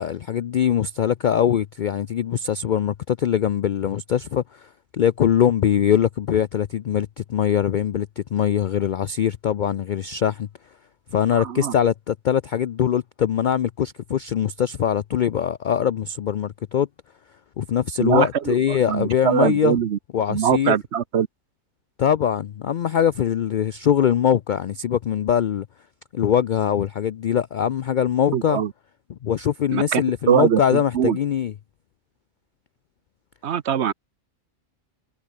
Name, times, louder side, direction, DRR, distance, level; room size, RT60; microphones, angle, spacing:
voice 1, 0.0-10.5 11.1-16.9 17.6-19.8 20.1-20.8 22.0-25.7 26.1-28.6 29.1-31.5, left 9 dB, 85° left, 0.4 m, -22 dB
voice 2, 11.4-11.7 18.0-20.0 20.3-21.3 28.3-28.7 29.7-30.0 30.3-31.2 33.4-33.9, right 8 dB, 60° right, 1.0 m, -22 dB
omnidirectional pair, 1.4 m